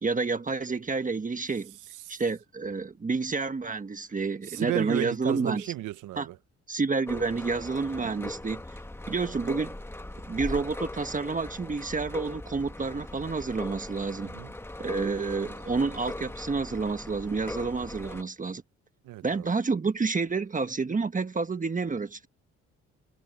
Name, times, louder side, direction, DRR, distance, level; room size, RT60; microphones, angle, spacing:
voice 1, 0.0-1.7 2.1-5.7 6.2-6.3 6.7-8.6 9.1-9.8 10.3-14.3 14.8-18.6 19.2-22.3, right 4 dB, 25° right, 1.4 m, -29 dB
voice 2, 4.5-6.4 8.0-8.3 14.2-14.5 19.0-19.5, right 16 dB, 85° right, 0.9 m, -34 dB
sound 1, 7.1-18.2, left 1 dB, 10° left, 1.6 m, -40 dB
cardioid pair, 90°, 30 cm